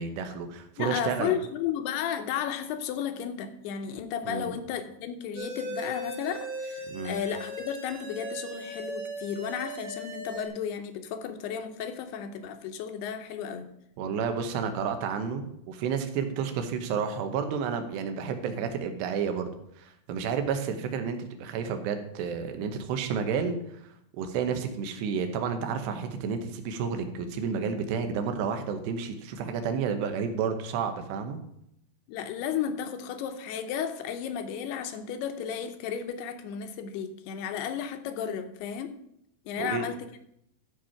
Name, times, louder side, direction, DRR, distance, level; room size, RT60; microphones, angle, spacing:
voice 1, 0.0-1.3 4.3-4.5 6.9-7.2 14.0-23.6 24.1-31.4 39.6-39.9, right 6 dB, 80° right, 7 dB, 3.1 m, -31 dB
voice 2, 0.8-13.7 32.1-38.9 39.5-40.0, left 8 dB, 75° left, 8 dB, 2.6 m, -33 dB
sound 1, 5.4-10.5, right 1 dB, 50° right, 3.7 m, -38 dB
13.0 x 5.2 x 5.8 m, 0.76 s
omnidirectional pair, 5.0 m